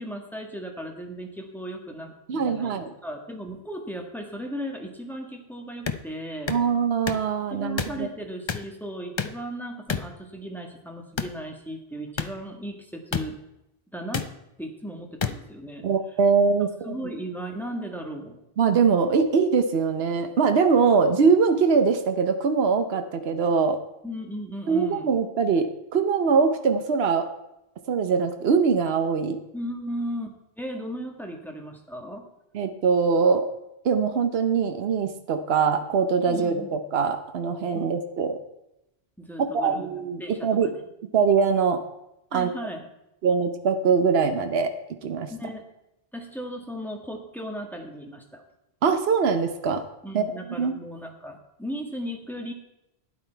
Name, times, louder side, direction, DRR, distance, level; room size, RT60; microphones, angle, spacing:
voice 1, 0.0-6.5 7.5-13.4 13.9-14.3 14.6-15.9 16.8-18.4 24.0-25.1 29.5-32.3 36.3-36.8 37.7-37.9 39.2-40.7 42.3-42.9 45.3-45.6 46.1-48.4 50.0-52.5, equal, ahead, 2 dB, 1.5 m, -36 dB
voice 2, 2.3-2.9 6.5-8.1 15.8-16.9 18.6-23.8 24.7-27.3 27.9-29.4 32.5-33.5 33.8-38.4 39.5-40.7 41.1-41.8 42.3-42.5 43.2-44.7 45.0-45.3 48.8-49.8 50.1-50.2 50.6-50.7, right 5 dB, 75° right, 8 dB, 1.1 m, -22 dB
sound 1, 5.9-6.0 6.5-6.6 7.1-7.3 7.8-8.0 8.5-8.7 9.2-9.4 9.9-10.1 11.2-11.4 12.2-12.3 13.1-13.3 14.1-14.3 15.2-15.3, left 5 dB, 35° left, 0.5 m, -28 dB
12.0 x 9.7 x 4.5 m, 0.87 s
omnidirectional pair, 1.1 m